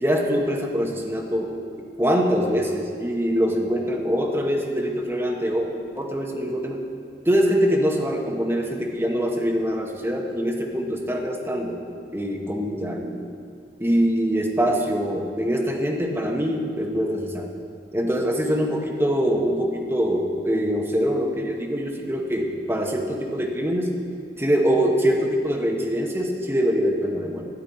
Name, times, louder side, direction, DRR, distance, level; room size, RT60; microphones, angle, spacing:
voice 1, 0.0-1.6 2.0-5.7 6.0-6.8 7.2-11.8 12.1-13.2 13.8-17.5 17.9-23.9 24.4-27.4, equal, 15° right, 0 dB, 0.9 m, -24 dB
13.0 x 8.4 x 4.3 m, 2.4 s
head